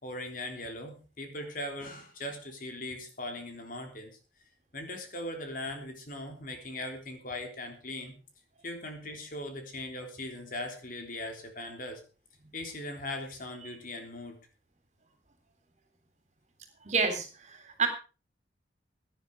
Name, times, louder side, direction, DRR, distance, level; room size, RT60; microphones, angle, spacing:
voice 1, 0.0-4.2 4.7-8.2 8.6-12.0 12.5-14.4, left 1 dB, 50° left, 4 dB, 3.4 m, -39 dB
voice 2, 16.8-17.9, right 4 dB, 40° right, 6 dB, 3.5 m, -29 dB
16.5 x 10.5 x 4.8 m, 0.35 s
head